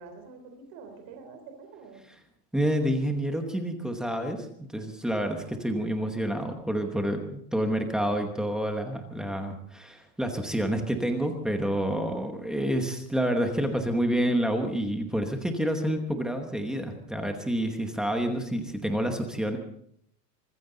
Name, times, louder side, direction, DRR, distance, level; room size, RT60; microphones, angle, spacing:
voice 1, 0.0-2.0 5.4-5.5, right 4 dB, 30° right, 5 dB, 3.6 m, -47 dB
voice 2, 2.5-19.6, right 1 dB, ahead, 4 dB, 1.0 m, -28 dB
24.5 x 15.0 x 3.9 m, 0.69 s
supercardioid pair, 180°, 49 cm